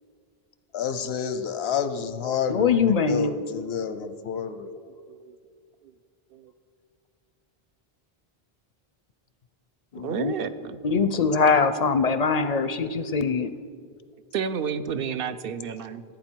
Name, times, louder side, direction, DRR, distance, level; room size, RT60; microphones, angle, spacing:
voice 1, 0.7-4.8, left 7 dB, 90° left, 11 dB, 1.0 m, -29 dB
voice 2, 2.5-3.3 9.9-10.3 10.8-13.5, left 5 dB, 50° left, 11 dB, 0.5 m, -22 dB
voice 3, 10.0-10.8 13.7-13.9 14.3-16.0, right 7 dB, 70° right, 11 dB, 0.8 m, -31 dB
15.5 x 9.1 x 4.5 m, 2.2 s
omnidirectional pair, 1.0 m